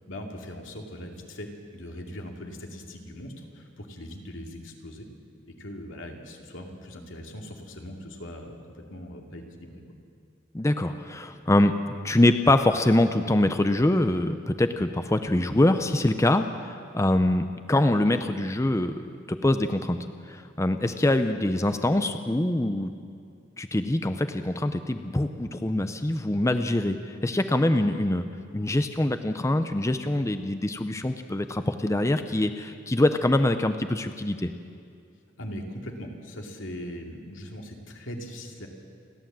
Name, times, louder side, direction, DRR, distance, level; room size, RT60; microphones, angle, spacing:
voice 1, 0.0-5.1 5.5-9.8 35.4-38.7, equal, 85° left, 1 dB, 2.6 m, -40 dB
voice 2, 10.5-11.8 12.0-19.0 19.3-20.0 20.3-22.9 23.6-28.2 28.5-34.5, left 1 dB, 15° left, 9 dB, 0.6 m, -24 dB
30.0 x 11.5 x 7.5 m, 2.4 s
head